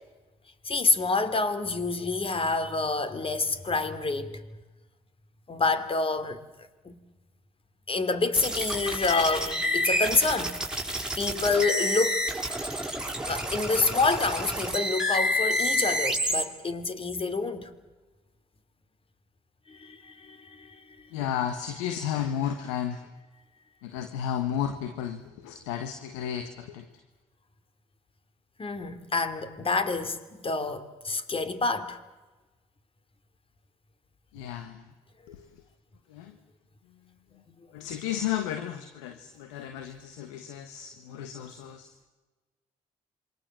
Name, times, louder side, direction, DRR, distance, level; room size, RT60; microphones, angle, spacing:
voice 1, 0.6-4.4 5.5-6.4 6.8-7.0 7.9-10.9 11.2-12.2 13.2-17.7 19.7-20.8 28.6-32.0, left 3 dB, 40° left, 3.1 m, -28 dB
sound 1, 8.3-16.4, equal, 5° right, 6.2 m, -29 dB
voice 2, 21.1-23.0 23.8-26.8 34.3-34.8 35.3-35.4 36.1-36.3 37.7-41.9, left 9 dB, 85° left, 1.4 m, -33 dB
27.5 x 24.5 x 7.6 m
hypercardioid pair, 45°, 15 cm